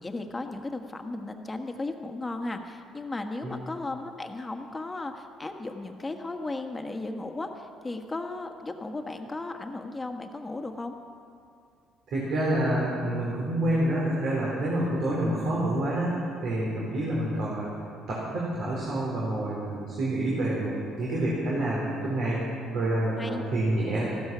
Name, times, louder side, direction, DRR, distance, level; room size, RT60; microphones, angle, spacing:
voice 1, 0.0-10.9 23.2-23.4, left 2 dB, 20° left, 5 dB, 1.5 m, -35 dB
voice 2, 12.1-17.7 18.1-22.4 22.7-24.1, right 1 dB, 65° right, -5 dB, 4.0 m, -28 dB
15.5 x 13.0 x 6.2 m, 2.4 s
cardioid pair, 90°, 0 cm